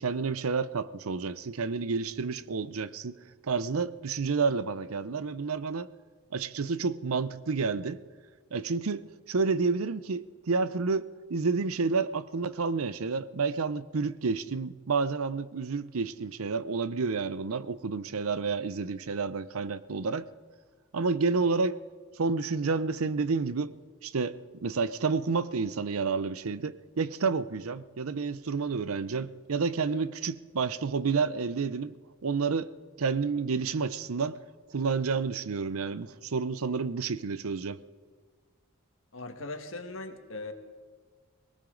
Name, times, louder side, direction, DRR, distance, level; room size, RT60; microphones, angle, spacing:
voice 1, 0.0-3.2 3.4-5.9 6.3-8.0 8.5-20.3 20.9-21.8 22.2-23.7 24.0-24.3 24.6-31.9 32.2-32.7 33.0-34.4 34.7-37.8, right 4 dB, 85° right, 15 dB, 0.6 m, -30 dB
voice 2, 39.1-40.5, left 2 dB, 65° left, 6 dB, 1.5 m, -39 dB
19.5 x 18.5 x 3.9 m, 1.6 s
head